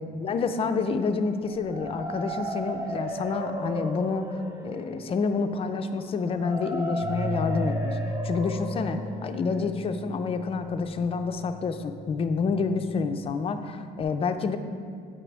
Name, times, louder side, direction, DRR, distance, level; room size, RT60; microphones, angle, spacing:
voice 1, 0.0-4.3 4.6-8.0 8.2-14.6, left 4 dB, 35° left, 8 dB, 0.4 m, -28 dB
sound 1, 1.5-11.3, equal, 15° right, 0.7 m, -36 dB
Bass guitar, 7.0-13.3, equal, 80° right, 0.9 m, -36 dB
8.6 x 4.9 x 3.3 m, 2.2 s
cardioid pair, 110°, 17 cm